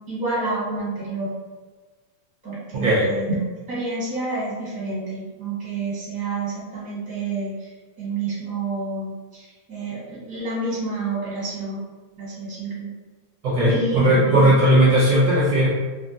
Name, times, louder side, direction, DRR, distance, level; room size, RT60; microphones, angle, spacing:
voice 1, 0.1-1.3 2.4-3.3 3.7-7.7 8.0-11.8 12.1-12.9 13.7-14.5, right 3 dB, 5° right, -9 dB, 0.6 m, -29 dB
voice 2, 2.7-3.1 13.4-15.7, right 1 dB, 65° right, -8 dB, 1.0 m, -17 dB
3.5 x 2.1 x 2.5 m, 1.4 s
omnidirectional pair, 2.2 m